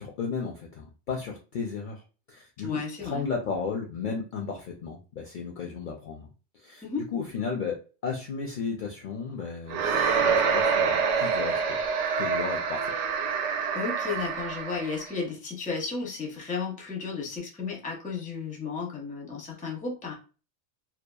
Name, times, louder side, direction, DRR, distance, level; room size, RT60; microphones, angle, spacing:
voice 1, 0.0-2.0 2.3-6.3 6.6-6.8 7.1-11.8 12.2-12.9, left 5 dB, 60° left, 0 dB, 0.5 m, -34 dB
voice 2, 2.6-3.3 6.8-7.1 13.7-20.1, left 4 dB, 10° left, -1 dB, 0.4 m, -33 dB
sound 1, 9.7-15.1, right 6 dB, 80° right, 0.9 m, -26 dB
2.8 x 2.2 x 2.2 m, 0.34 s
omnidirectional pair, 1.2 m